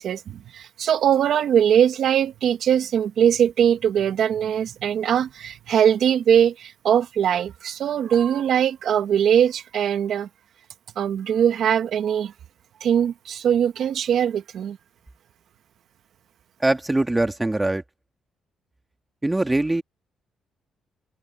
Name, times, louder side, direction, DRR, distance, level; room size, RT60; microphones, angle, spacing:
voice 1, 0.0-10.3 10.9-12.3 12.8-14.8, right 9 dB, 70° right, 1.6 m, -21 dB
voice 2, 16.6-17.8 19.2-19.8, right 2 dB, 15° right, 2.0 m, -22 dB
cardioid pair, 90°, 0 cm